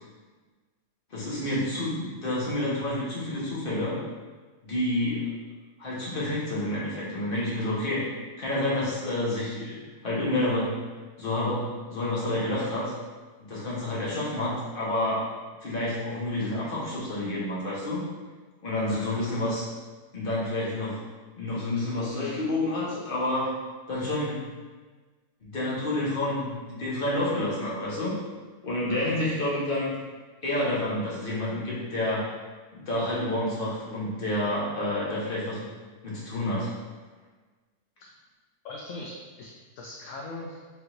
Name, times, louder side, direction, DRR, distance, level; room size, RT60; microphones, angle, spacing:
voice 1, 1.1-4.0 4.6-5.3 5.8-8.0 8.4-10.8 11.2-12.9 13.4-15.2 15.6-18.0 18.6-19.6 20.1-21.0 21.4-23.5 23.9-24.4 25.4-28.2 28.6-29.9 30.4-32.3 32.7-35.7 36.0-36.7, left 1 dB, 40° left, -7 dB, 1.3 m, -29 dB
voice 2, 18.9-19.2 28.9-29.2 38.0-38.1 38.6-39.5 39.8-40.6, left 2 dB, 70° left, -2 dB, 0.8 m, -38 dB
4.5 x 4.0 x 2.6 m, 1.4 s
omnidirectional pair, 1.6 m